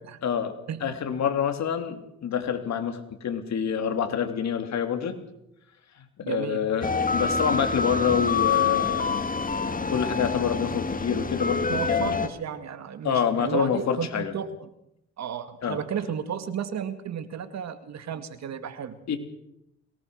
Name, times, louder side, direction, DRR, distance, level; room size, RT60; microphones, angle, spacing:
voice 1, 0.2-0.5 0.8-5.1 6.0-9.2 9.9-12.2 13.0-14.3 15.6-15.8 19.1-19.2, left 8 dB, 65° left, 7 dB, 3.1 m, -27 dB
voice 2, 6.2-6.6 11.7-14.7 15.2-19.0, right 7 dB, 60° right, 10 dB, 2.1 m, -33 dB
sound 1, 6.8-12.3, left 5 dB, 30° left, 1.7 m, -26 dB
22.5 x 19.0 x 6.5 m, 0.81 s
cardioid pair, 90°, 30 cm